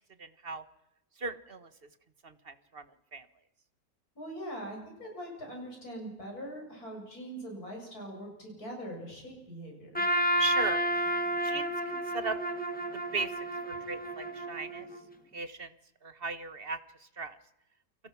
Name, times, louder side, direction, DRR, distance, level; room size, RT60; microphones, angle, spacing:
voice 1, 0.2-0.6 1.2-1.7 2.2-2.9 3.1-3.3 10.4-11.1 11.4-12.4 12.9-13.3 13.7-14.9 15.3-15.7 16.0-17.4, right 4 dB, 40° right, 12 dB, 1.5 m, -37 dB
voice 2, 4.1-10.1, right 1 dB, 70° left, 1 dB, 8.2 m, -42 dB
Trumpet, 9.9-15.0, equal, 5° left, 1.8 m, -31 dB
29.5 x 24.0 x 6.0 m, 0.86 s
omnidirectional pair, 1.6 m